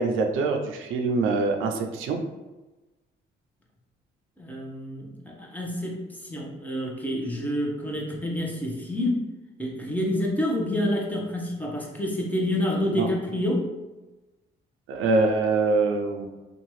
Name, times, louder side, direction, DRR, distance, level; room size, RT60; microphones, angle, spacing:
voice 1, 0.0-2.2 12.9-13.1 14.9-16.3, right 3 dB, 85° right, 4 dB, 0.4 m, -24 dB
voice 2, 4.4-9.3 9.6-13.7, left 1 dB, 10° left, -2 dB, 0.7 m, -28 dB
2.7 x 2.3 x 3.0 m, 1.1 s
cardioid pair, 90°, 20 cm